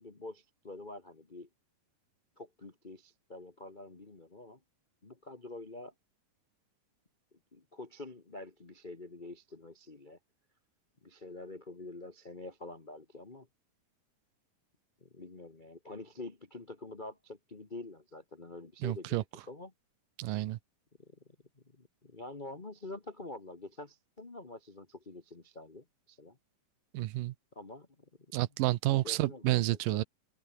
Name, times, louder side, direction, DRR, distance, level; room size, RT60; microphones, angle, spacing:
voice 1, 0.0-1.5 2.4-4.6 5.0-5.9 7.5-10.2 11.0-13.5 15.0-19.7 21.0-21.2 21.7-26.4 27.5-27.9 29.0-29.6 29.9-30.0, left 2 dB, 30° left, 0.8 m, -47 dB
voice 2, 18.8-19.2 20.2-20.6 26.9-27.3 28.3-30.0, right 16 dB, 85° right, 2.5 m, -30 dB
open air
omnidirectional pair, 3.8 m